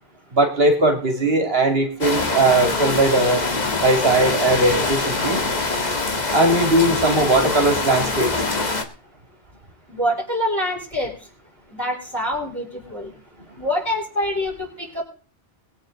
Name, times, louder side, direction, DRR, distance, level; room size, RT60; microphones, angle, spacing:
voice 1, 0.3-3.5 3.8-5.4 6.3-8.5, right 2 dB, 65° right, 4 dB, 2.8 m, -19 dB
sound 1, 2.0-8.8, left 3 dB, 40° left, 1.6 m, -24 dB
voice 2, 9.9-11.1 11.7-13.1 13.6-15.0, equal, 15° left, -5 dB, 4.3 m, -25 dB
21.0 x 9.2 x 3.9 m, 0.39 s
omnidirectional pair, 1.1 m